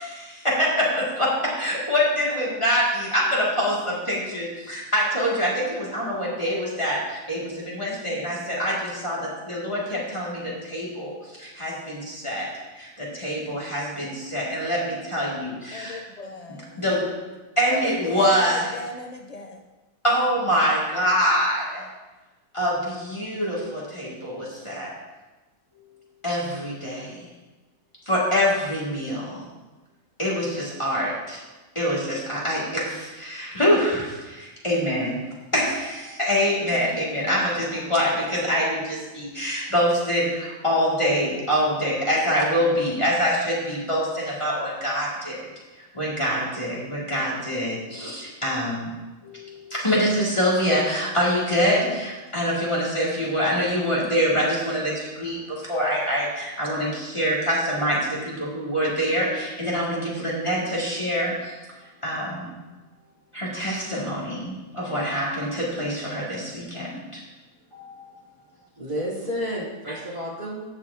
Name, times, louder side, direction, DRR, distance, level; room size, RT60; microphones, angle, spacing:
voice 1, 0.0-12.5 12.7-16.0 16.8-17.1 17.6-18.7 20.0-21.8 22.5-24.9 26.2-27.2 28.1-29.4 30.2-31.4 31.7-35.2 35.5-45.4 45.9-48.9 49.2-61.6 62.0-62.5 63.3-67.2 67.7-68.2, equal, 20° left, -6 dB, 2.3 m, -25 dB
voice 2, 15.7-16.8 17.7-19.6, left 3 dB, 80° left, 3 dB, 0.3 m, -36 dB
voice 3, 68.8-70.6, equal, 25° right, -9 dB, 3.6 m, -30 dB
16.5 x 6.1 x 2.8 m, 1.2 s
omnidirectional pair, 1.5 m